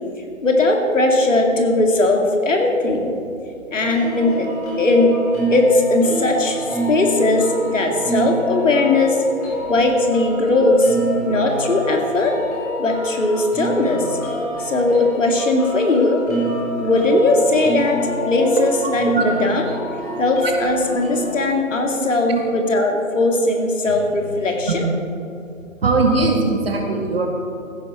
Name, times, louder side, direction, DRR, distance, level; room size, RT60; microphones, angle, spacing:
voice 1, 0.4-3.2 3.7-4.5 4.8-5.1 5.5-9.2 9.7-11.0 11.2-12.3 12.8-14.1 14.6-16.2 16.8-19.6 20.2-24.9, left 2 dB, 65° left, 2 dB, 2.3 m, -18 dB
sound 1, 3.8-21.4, right 1 dB, 30° left, 3.7 m, -27 dB
voice 2, 25.8-27.3, right 3 dB, 45° right, 1 dB, 2.1 m, -19 dB
16.0 x 10.5 x 4.4 m, 2.6 s
figure-of-eight pair, 160°, 41 cm